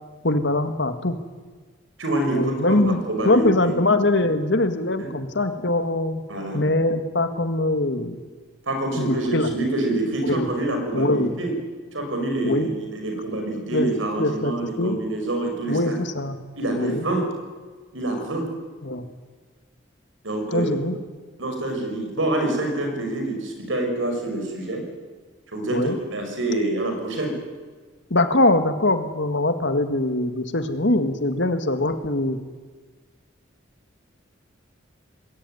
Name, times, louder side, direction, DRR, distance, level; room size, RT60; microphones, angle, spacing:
voice 1, 0.2-1.2 2.3-3.0 3.3-6.2 6.5-8.2 9.0-9.5 10.2-10.5 10.9-11.3 12.4-12.7 13.7-13.9 14.2-15.0 15.7-16.4 16.8-17.1 18.8-19.0 20.5-21.0 25.7-26.0 28.1-32.4, left 2 dB, 70° left, 9 dB, 1.9 m, -22 dB
voice 2, 2.0-3.8 5.0-5.1 6.3-6.6 8.6-11.5 11.9-16.0 16.6-17.2 17.9-18.4 20.2-20.7 21.4-24.8 25.5-27.3, right 2 dB, 90° right, 3 dB, 6.1 m, -26 dB
20.5 x 18.0 x 9.3 m, 1.4 s
head